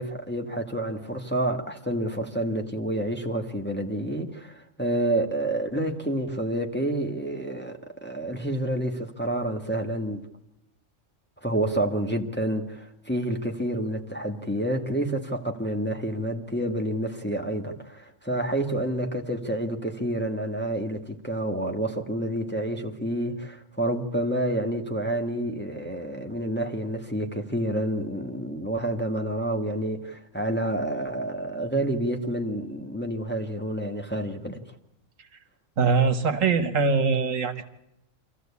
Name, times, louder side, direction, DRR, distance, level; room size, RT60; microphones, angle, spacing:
voice 1, 0.0-10.2 11.4-34.8, right 1 dB, 10° left, 1.5 m, -29 dB
voice 2, 35.8-37.6, right 5 dB, 75° right, 1.7 m, -22 dB
26.0 x 15.0 x 8.4 m
omnidirectional pair, 1.4 m